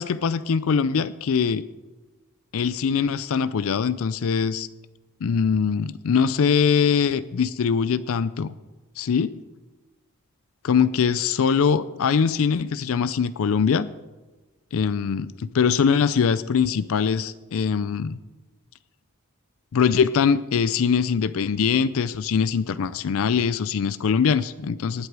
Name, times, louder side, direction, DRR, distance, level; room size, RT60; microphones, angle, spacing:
voice 1, 0.0-1.6 2.5-4.7 5.2-8.5 9.0-9.3 10.6-13.9 14.7-18.2 19.7-25.1, left 6 dB, 65° left, 15 dB, 0.4 m, -22 dB
18.5 x 8.0 x 4.8 m, 1.2 s
head